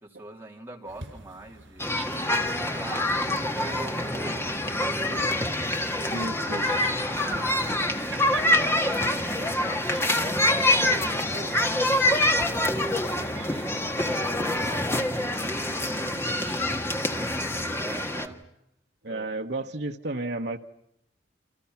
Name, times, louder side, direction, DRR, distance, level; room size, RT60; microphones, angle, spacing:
voice 1, 0.0-2.0 2.6-5.7 6.3-9.9 10.5-12.8 13.4-14.9 15.3-18.4 19.1-19.3, right 1 dB, 15° right, 0 dB, 3.4 m, -43 dB
sound 1, 0.9-16.7, right 4 dB, 80° right, 5.4 m, -46 dB
sound 2, 1.8-18.3, left 1 dB, 15° left, 1.5 m, -26 dB
voice 2, 6.1-6.7 19.0-20.6, right 2 dB, 60° right, 3 dB, 1.3 m, -32 dB
29.0 x 26.5 x 5.9 m, 0.77 s
head